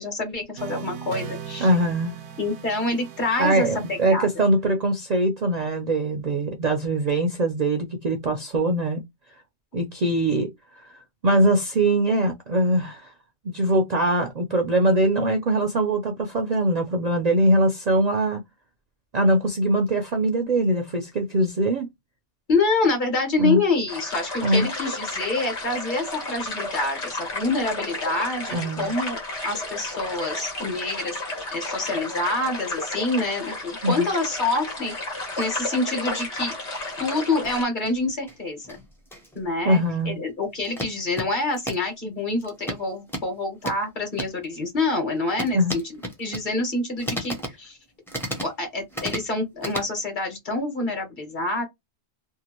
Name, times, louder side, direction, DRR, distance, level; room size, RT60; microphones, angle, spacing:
voice 1, 0.0-1.7 2.4-3.7 4.1-4.3 22.5-31.2 31.5-34.9 35.4-36.5 37.0-38.8 39.3-47.8 48.4-51.6, left 2 dB, 45° left, 1.3 m, -27 dB
sound 1, 0.6-4.8, right 7 dB, 80° right, 0.9 m, -39 dB
voice 2, 1.6-2.2 3.4-9.0 9.7-10.5 11.2-13.1 13.4-18.4 19.1-21.9 23.4-23.6 24.4-24.7 28.5-28.9 33.8-34.1 39.6-40.2 45.5-45.7, right 1 dB, 55° right, 0.5 m, -22 dB
sound 2, 23.9-37.6, left 2 dB, 80° left, 1.3 m, -32 dB
sound 3, 34.8-36.8 37.4-39.5 40.0-40.2 40.6-41.9 42.4-44.4 45.3-46.5 47.0-47.6 48.1-49.3 49.6-49.8, equal, 5° left, 0.4 m, -35 dB
2.7 x 2.2 x 2.9 m
omnidirectional pair, 1.1 m